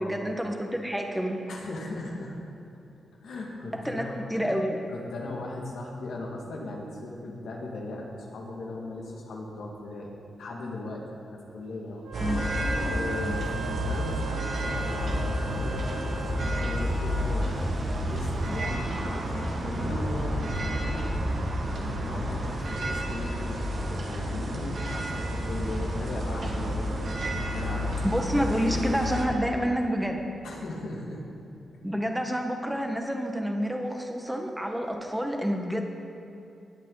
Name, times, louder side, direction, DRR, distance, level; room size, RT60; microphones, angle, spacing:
voice 1, 0.0-1.4 3.7-4.8 12.1-12.4 13.2-13.4 28.0-30.2 31.8-35.8, equal, 5° right, 2 dB, 1.5 m, -28 dB
voice 2, 1.5-2.4 3.2-4.6 4.9-12.3 12.9-21.2 21.7-28.2 28.5-28.6 30.4-31.2, left 2 dB, 80° left, -1 dB, 2.1 m, -38 dB
Wind instrument woodwind instrument, 12.0-16.5, right 2 dB, 85° right, 1.4 m, -38 dB
sound 1, 12.1-29.2, equal, 60° right, 1.9 m, -30 dB
sound 2, 13.1-18.8, right 2 dB, 35° right, 1.9 m, -43 dB
20.5 x 8.2 x 4.0 m, 2.7 s
cardioid pair, 75°, 0 cm